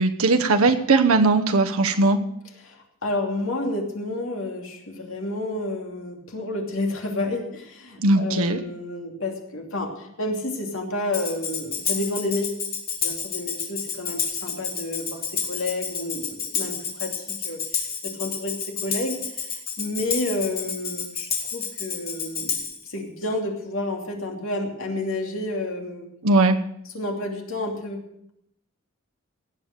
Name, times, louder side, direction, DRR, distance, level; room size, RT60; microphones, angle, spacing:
voice 1, 0.0-2.2 8.0-8.6 26.2-26.6, right 3 dB, 80° right, 5 dB, 0.9 m, -19 dB
voice 2, 2.6-12.5 13.0-18.5 18.8-19.2 19.5-26.1 26.9-28.0, left 2 dB, 70° left, 1 dB, 2.8 m, -30 dB
Tambourine, 11.1-22.8, left 6 dB, 50° left, 2.8 m, -30 dB
17.5 x 7.2 x 6.7 m, 0.76 s
head